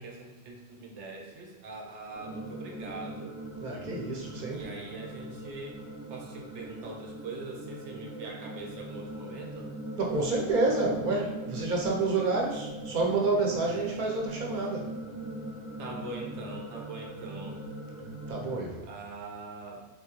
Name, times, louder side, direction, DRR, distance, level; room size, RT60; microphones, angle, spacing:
voice 1, 0.0-3.3 4.5-5.8 6.1-9.7 13.7-14.1 14.5-14.7 15.8-17.6 18.8-19.8, right 3 dB, 80° right, 1 dB, 1.0 m, -42 dB
sound 1, 2.1-18.6, right 1 dB, 35° left, 0.6 m, -40 dB
voice 2, 3.6-4.6 9.9-14.9 18.3-18.9, right 3 dB, 50° right, -1 dB, 0.8 m, -29 dB
3.6 x 3.1 x 2.9 m, 1.1 s
omnidirectional pair, 1.2 m